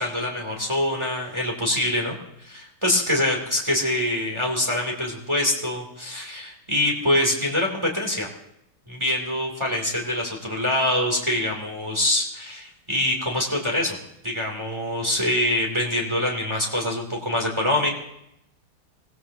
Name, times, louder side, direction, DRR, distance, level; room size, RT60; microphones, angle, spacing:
voice 1, 0.0-2.2 2.4-8.3 8.9-14.0 14.2-17.9, left 1 dB, 10° right, -1 dB, 2.8 m, -24 dB
25.0 x 18.5 x 2.8 m, 0.80 s
omnidirectional pair, 2.4 m